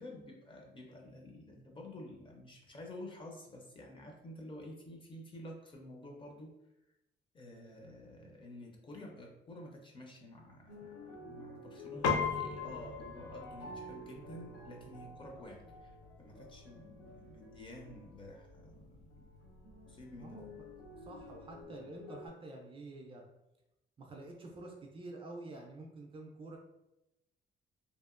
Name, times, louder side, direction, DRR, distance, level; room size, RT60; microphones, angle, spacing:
voice 1, 0.0-6.5 7.3-19.3 19.9-20.4, left 1 dB, 25° left, 1 dB, 0.5 m, -50 dB
sound 1, 10.7-22.3, left 1 dB, 70° left, 0.9 m, -51 dB
Piano, 12.0-21.6, left 5 dB, 90° left, 0.5 m, -42 dB
voice 2, 20.2-20.5 21.0-23.2 24.0-26.6, right 2 dB, 30° right, 1 dB, 0.4 m, -48 dB
2.8 x 2.4 x 2.4 m, 0.92 s
cardioid pair, 125°, 19 cm